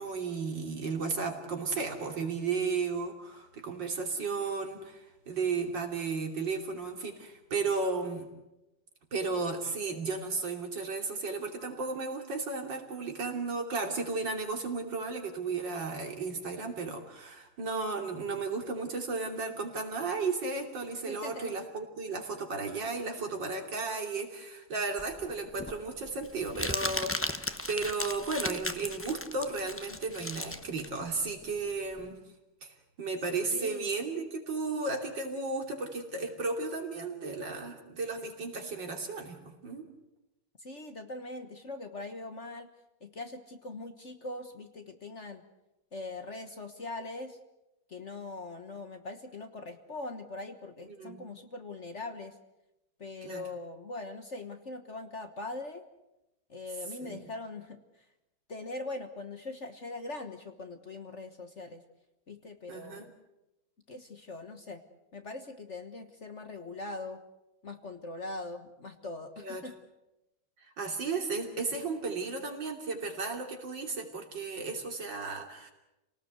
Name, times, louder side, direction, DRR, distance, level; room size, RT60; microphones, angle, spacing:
voice 1, 0.0-8.3 9.1-32.2 32.6-39.9 51.0-51.2 53.2-53.4 57.0-57.3 62.7-63.1 69.4-69.6 70.6-75.7, right 4 dB, 65° right, 3 dB, 3.6 m, -34 dB
voice 2, 21.1-21.6 33.5-33.9 40.6-42.7 43.0-45.4 45.9-47.4 47.9-52.4 53.0-55.8 56.5-57.8 58.5-61.8 62.3-63.1 63.9-64.8 65.1-67.2 67.6-69.7, left 2 dB, 40° left, 7 dB, 1.5 m, -41 dB
Crumpling crinkling, 25.0-32.1, left 1 dB, 20° left, 0.3 m, -36 dB
28.0 x 18.5 x 8.0 m, 0.96 s
omnidirectional pair, 2.1 m